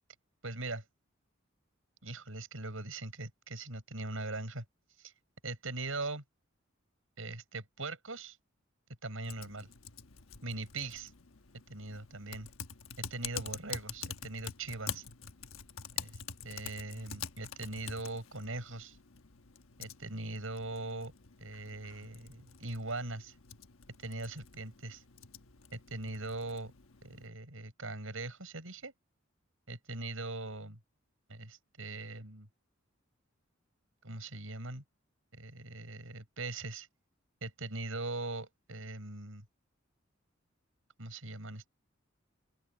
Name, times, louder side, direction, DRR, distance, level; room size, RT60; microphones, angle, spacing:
voice 1, 0.4-0.8 2.0-4.6 5.0-5.1 5.4-6.2 7.2-8.4 9.0-9.7 10.4-11.1 11.7-12.5 13.0-15.0 16.0-16.2 16.4-19.0 19.8-21.1 21.4-23.3 24.0-25.0 25.7-26.7 27.0-28.9 29.7-30.8 31.3-32.5 34.0-34.8 35.3-36.9 37.4-39.4 41.0-41.7, right 2 dB, 80° right, 6.1 m, -41 dB
Typing, 9.2-27.3, left 8 dB, 90° left, 1.2 m, -47 dB
open air
head